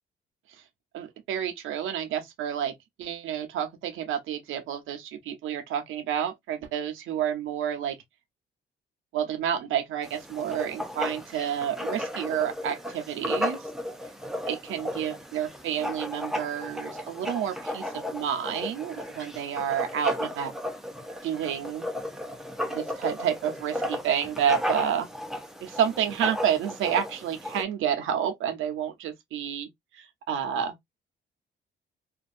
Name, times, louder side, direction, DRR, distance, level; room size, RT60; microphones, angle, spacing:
voice 1, 0.9-2.7 3.0-7.9 9.1-13.6 14.5-20.5 21.2-21.9 22.7-25.1 25.6-29.7 29.9-30.7, right 9 dB, 85° right, 0.8 m, -29 dB
Writing, 10.0-27.6, left 1 dB, ahead, 0.5 m, -34 dB
2.5 x 2.3 x 2.4 m
cardioid pair, 90°, 20 cm